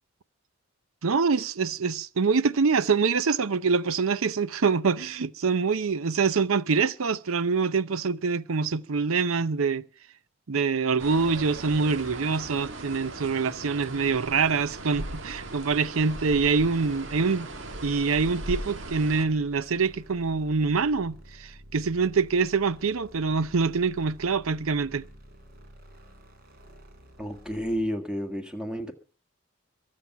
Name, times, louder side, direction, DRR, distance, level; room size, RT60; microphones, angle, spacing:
voice 1, 1.0-9.8 10.5-17.5 17.8-25.1, right 5 dB, 85° right, 0.7 m, -25 dB
sound 1, 11.0-19.3, right 2 dB, 65° right, 1.7 m, -38 dB
sound 2, 16.8-27.9, equal, 45° right, 3.8 m, -50 dB
voice 2, 27.2-28.9, equal, 5° right, 1.6 m, -31 dB
22.0 x 7.6 x 5.7 m
head